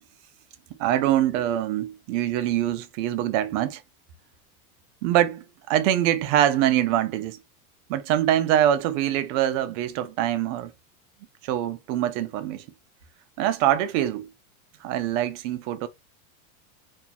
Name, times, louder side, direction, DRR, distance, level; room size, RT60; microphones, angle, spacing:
voice 1, 0.8-3.8 5.0-7.4 7.9-10.7 11.4-12.6 13.4-14.3 14.8-15.9, right 11 dB, 55° right, 0.6 m, -24 dB
2.6 x 2.5 x 2.2 m
supercardioid pair, 120°, 44 cm